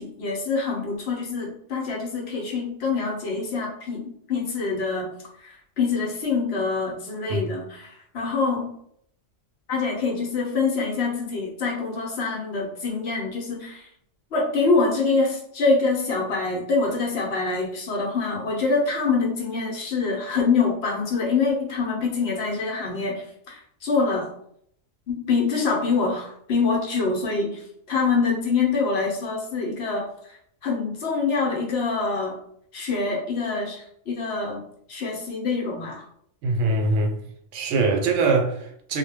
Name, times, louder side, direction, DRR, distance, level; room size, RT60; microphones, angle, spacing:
voice 1, 0.0-5.1 5.4-8.7 9.7-13.9 14.3-24.3 25.1-30.1 30.6-32.4 32.7-34.6 34.9-36.0, left 4 dB, 60° left, 0.8 m, -25 dB
voice 2, 36.4-37.1 37.5-39.0, right 3 dB, 75° right, 0.9 m, -22 dB
2.2 x 2.1 x 3.3 m
omnidirectional pair, 1.3 m